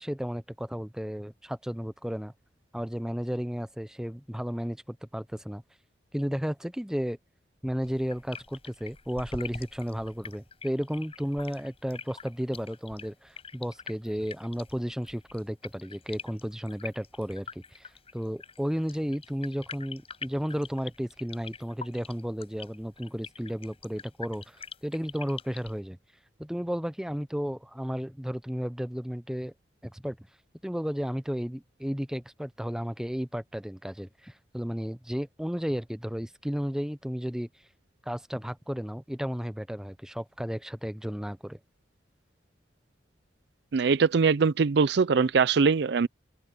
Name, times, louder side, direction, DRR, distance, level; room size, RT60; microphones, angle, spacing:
voice 1, 0.0-2.3 2.7-5.6 6.1-7.2 7.6-26.0 26.4-29.5 29.8-30.2 30.6-37.5 38.1-41.6, equal, 5° right, 0.6 m, -33 dB
sound 1, 7.8-25.8, left 5 dB, 30° left, 7.9 m, -44 dB
voice 2, 43.7-46.1, right 5 dB, 65° right, 0.5 m, -22 dB
open air
head